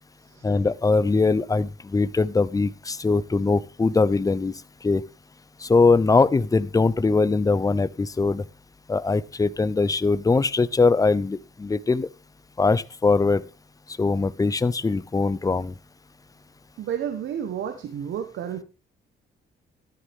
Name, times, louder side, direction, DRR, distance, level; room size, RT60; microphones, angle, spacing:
voice 1, 0.4-4.5 4.8-5.0 5.6-8.4 8.9-12.1 12.6-13.4 14.0-15.7, left 3 dB, 15° left, 18 dB, 0.7 m, -21 dB
voice 2, 16.8-18.6, right 9 dB, 70° right, 8 dB, 1.3 m, -31 dB
13.0 x 11.0 x 3.6 m, 0.31 s
cardioid pair, 90°, 20 cm